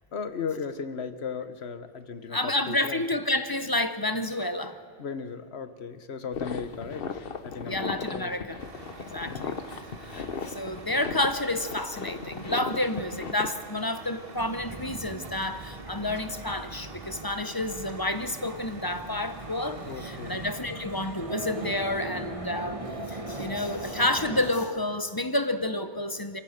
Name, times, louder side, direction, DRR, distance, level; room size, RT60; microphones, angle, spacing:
voice 1, 0.1-3.0 5.0-8.3 9.3-9.5 19.9-20.4, left 6 dB, 80° left, 11 dB, 1.3 m, -36 dB
voice 2, 2.3-4.8 7.6-8.6 9.0-26.4, left 1 dB, 20° left, 11 dB, 0.9 m, -30 dB
sound 1, 6.3-13.5, left 5 dB, 60° left, 1.2 m, -36 dB
Truck, 8.6-20.6, right 3 dB, 65° right, 1.8 m, -46 dB
sound 2, 14.3-24.5, right 2 dB, 30° right, 1.6 m, -39 dB
27.0 x 15.5 x 6.6 m, 2.2 s
omnidirectional pair, 1.1 m